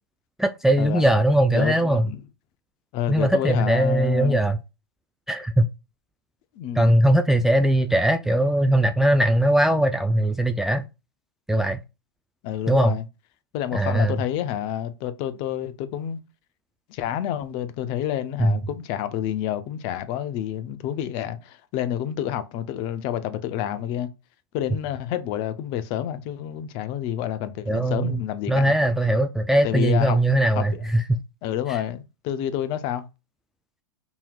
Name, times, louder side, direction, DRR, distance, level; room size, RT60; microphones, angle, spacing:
voice 1, 0.4-2.1 3.1-4.6 5.3-5.7 6.8-10.8 11.5-11.8 12.7-13.0 13.7-14.2 18.4-18.6 27.7-28.2 28.5-31.0 31.7-31.8, right 1 dB, 5° right, 0.3 m, -20 dB
voice 2, 1.5-2.2 2.9-4.4 6.6-7.0 12.4-13.0 13.5-16.2 16.9-24.1 24.5-28.7 29.6-30.2 30.5-30.9 31.4-33.1, left 10 dB, 45° left, 0.6 m, -29 dB
5.5 x 3.0 x 2.3 m
hypercardioid pair, 110°, 13 cm